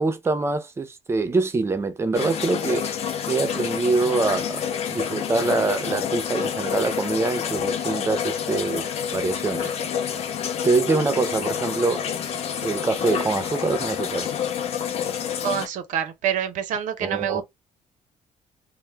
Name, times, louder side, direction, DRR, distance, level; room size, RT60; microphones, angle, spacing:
voice 1, 0.0-2.9 3.3-4.6 4.9-9.7 10.6-12.1 12.6-14.3 17.0-17.4, right 3 dB, 20° right, 0.4 m, -24 dB
sound 1, 2.1-15.7, left 8 dB, 55° left, 0.5 m, -28 dB
voice 2, 15.4-17.4, right 9 dB, 80° right, 0.6 m, -26 dB
2.1 x 2.0 x 3.1 m
cardioid pair, 140°, 13 cm